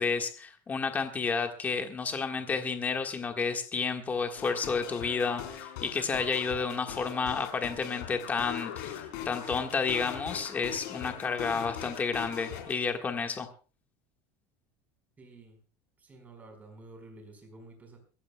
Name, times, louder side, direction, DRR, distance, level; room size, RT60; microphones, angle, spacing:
voice 1, 0.0-13.5, left 5 dB, 20° left, 5 dB, 1.5 m, -31 dB
sound 1, 4.4-12.7, left 10 dB, 80° left, 4.2 m, -41 dB
voice 2, 15.2-15.6 16.0-18.0, right 2 dB, 15° right, 4 dB, 4.7 m, -51 dB
24.0 x 15.0 x 2.3 m, 0.36 s
cardioid pair, 160°, 9 cm